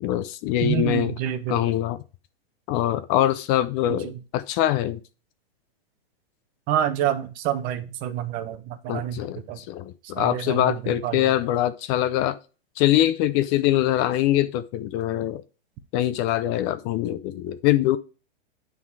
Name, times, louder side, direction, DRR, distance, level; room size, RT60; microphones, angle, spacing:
voice 1, 0.0-1.1 1.5-2.0 2.7-5.0 8.9-12.3 12.8-15.4 15.9-18.0, left 13 dB, 25° left, 0.4 m, -23 dB
voice 2, 0.6-1.7 3.9-4.1 6.7-9.6 10.2-11.2, right 11 dB, 25° right, 0.8 m, -28 dB
9.6 x 3.9 x 4.7 m
hypercardioid pair, 145°, 31 cm